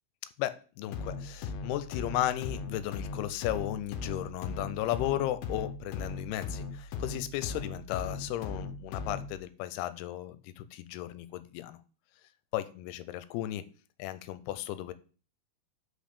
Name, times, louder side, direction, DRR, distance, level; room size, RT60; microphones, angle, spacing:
voice 1, 0.4-11.8 12.5-13.6 14.0-14.9, left 14 dB, 90° left, 13 dB, 2.6 m, -35 dB
sound 1, 0.9-9.4, left 4 dB, 75° left, 2.3 m, -38 dB
5.9 x 5.2 x 6.8 m, 0.38 s
omnidirectional pair, 4.6 m